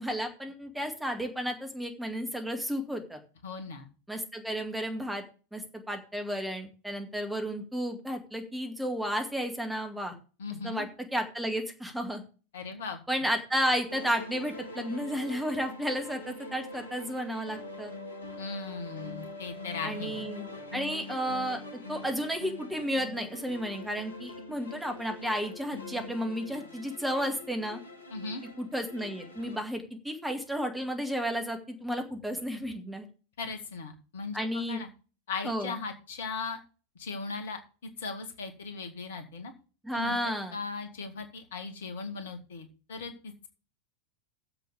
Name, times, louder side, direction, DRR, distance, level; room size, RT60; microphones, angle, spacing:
voice 1, 0.0-3.2 4.1-5.2 5.5-10.1 10.6-12.2 13.1-17.9 19.8-21.6 21.9-27.8 28.6-33.1 34.3-34.8 35.4-35.7 39.8-40.5, equal, 5° right, 4 dB, 2.1 m, -32 dB
voice 2, 3.4-3.9 10.4-10.9 12.5-13.0 18.4-20.2 28.1-28.4 33.4-34.9 35.3-36.6 37.0-39.5 39.9-43.5, left 4 dB, 60° left, 6 dB, 2.1 m, -38 dB
sound 1, 13.9-29.6, left 2 dB, 75° left, 1.8 m, -43 dB
7.6 x 6.8 x 8.3 m, 0.36 s
figure-of-eight pair, 90°, 0 cm